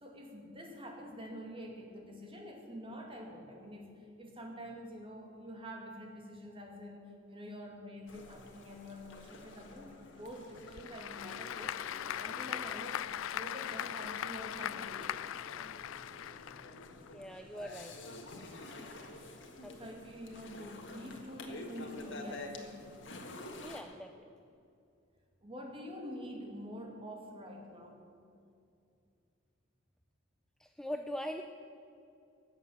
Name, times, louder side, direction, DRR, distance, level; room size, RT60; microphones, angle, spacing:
voice 1, 0.0-3.9 4.2-11.8 12.2-13.0 13.3-15.2 19.8-22.9 25.4-28.0, equal, 30° right, 1 dB, 2.4 m, -47 dB
sound 1, 8.1-23.8, left 2 dB, 65° left, 1.7 m, -49 dB
Applause / Crowd, 10.5-17.1, left 10 dB, 90° left, 0.4 m, -40 dB
voice 2, 17.1-17.9 19.6-19.8 23.6-24.3 30.6-31.4, left 1 dB, 5° left, 5 dB, 0.5 m, -41 dB
17.5 x 7.3 x 8.7 m, 2.5 s
head